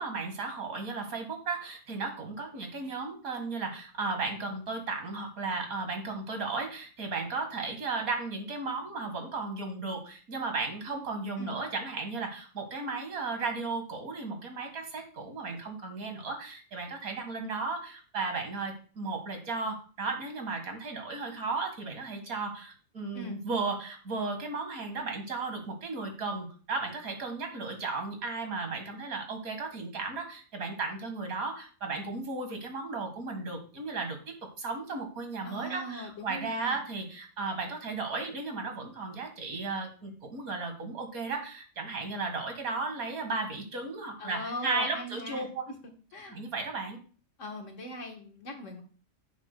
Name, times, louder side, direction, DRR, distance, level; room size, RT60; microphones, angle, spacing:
voice 1, 0.0-45.6 46.3-47.0, right 3 dB, 70° right, 4 dB, 2.1 m, -35 dB
voice 2, 35.4-36.8 44.2-45.7 46.1-46.4 47.4-48.8, left 1 dB, 55° left, 3 dB, 1.6 m, -40 dB
10.5 x 8.2 x 2.2 m, 0.39 s
omnidirectional pair, 1.6 m